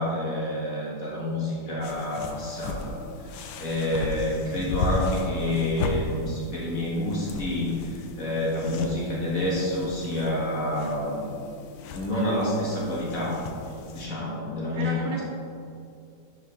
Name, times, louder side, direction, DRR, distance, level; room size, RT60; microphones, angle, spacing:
voice 1, 0.0-3.3 3.6-11.3 11.9-13.4 13.9-15.0, left 1 dB, 45° left, -6 dB, 2.1 m, -28 dB
sound 1, 1.8-14.1, left 3 dB, 80° left, 1.4 m, -35 dB
voice 2, 14.7-15.2, right 3 dB, 60° right, 0 dB, 1.2 m, -33 dB
12.0 x 4.7 x 3.6 m, 2.5 s
omnidirectional pair, 2.2 m